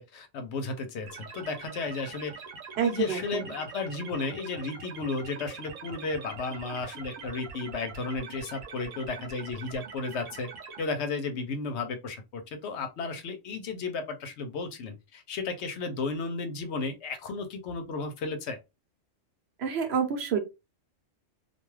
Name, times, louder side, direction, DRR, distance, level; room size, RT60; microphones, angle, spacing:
voice 1, 0.0-2.3 2.8-10.5 10.8-18.6, left 4 dB, 65° left, 0.8 m, -34 dB
sound 1, 1.1-10.8, right 5 dB, 80° right, 1.1 m, -43 dB
voice 2, 2.8-3.2 19.6-20.4, right 7 dB, 60° right, 0.9 m, -27 dB
2.4 x 2.2 x 3.1 m
omnidirectional pair, 1.3 m